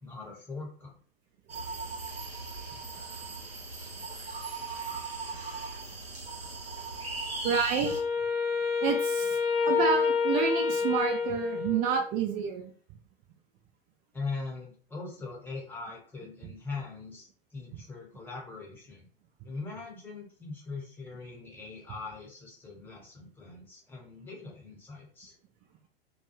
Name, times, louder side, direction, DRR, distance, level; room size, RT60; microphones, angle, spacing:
voice 1, 0.0-0.9 14.1-19.1 19.4-25.3, left 4 dB, 5° left, -2 dB, 1.1 m, -41 dB
sound 1, 1.5-8.0, right 3 dB, 85° right, 0.8 m, -38 dB
voice 2, 7.4-7.9 8.8-9.4 9.7-12.7, right 7 dB, 30° right, 3 dB, 0.4 m, -29 dB
Wind instrument woodwind instrument, 7.8-12.2, left 5 dB, 85° left, 0.5 m, -28 dB
2.3 x 2.2 x 3.0 m, 0.43 s
figure-of-eight pair, 90°, 30 cm